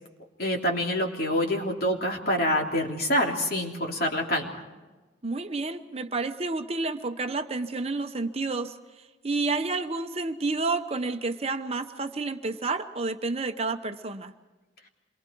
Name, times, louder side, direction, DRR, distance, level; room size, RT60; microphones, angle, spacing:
voice 1, 0.4-4.6, equal, 55° left, 1 dB, 3.2 m, -26 dB
voice 2, 5.2-8.7 9.2-14.3, right 3 dB, 35° right, 7 dB, 0.9 m, -30 dB
27.5 x 23.5 x 4.6 m, 1.2 s
head